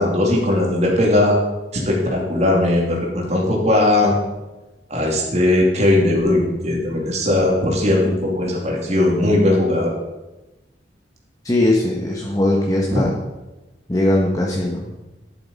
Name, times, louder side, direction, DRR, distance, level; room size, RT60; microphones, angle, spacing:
voice 1, 0.0-1.4 1.9-4.1 4.9-9.9 12.9-13.0, left 1 dB, 40° right, -1 dB, 2.8 m, -18 dB
voice 2, 11.4-13.1 13.9-14.9, left 1 dB, 20° left, -1 dB, 1.3 m, -19 dB
12.5 x 7.9 x 5.4 m, 1.1 s
head